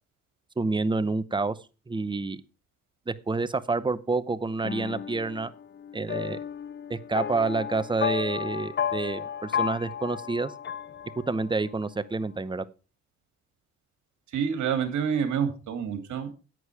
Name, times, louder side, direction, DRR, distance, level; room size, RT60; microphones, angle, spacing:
voice 1, 0.6-1.6 1.9-2.4 3.1-5.5 5.9-6.4 6.9-10.5 11.3-12.6, right 3 dB, 15° right, 14 dB, 0.8 m, -28 dB
sound 1, 4.6-11.6, left 8 dB, 35° left, 0.6 m, -33 dB
voice 2, 14.3-16.3, right 7 dB, 70° right, 6 dB, 3.0 m, -28 dB
11.0 x 8.2 x 4.8 m, 0.33 s
cardioid pair, 90°, 30 cm